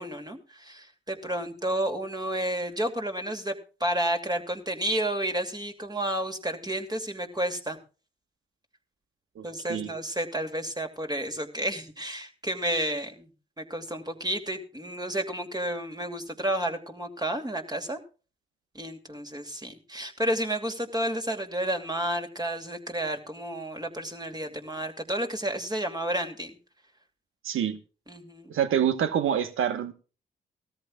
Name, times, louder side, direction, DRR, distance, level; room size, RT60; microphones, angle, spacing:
voice 1, 0.0-3.5 3.8-7.8 9.4-13.3 13.6-18.0 18.7-26.6 28.1-28.5, right 1 dB, 20° right, 4 dB, 2.6 m, -31 dB
voice 2, 9.4-9.9 27.4-27.8 28.5-29.9, right 9 dB, 75° right, 11 dB, 1.2 m, -26 dB
18.0 x 13.5 x 2.4 m, 0.34 s
supercardioid pair, 45°, 21 cm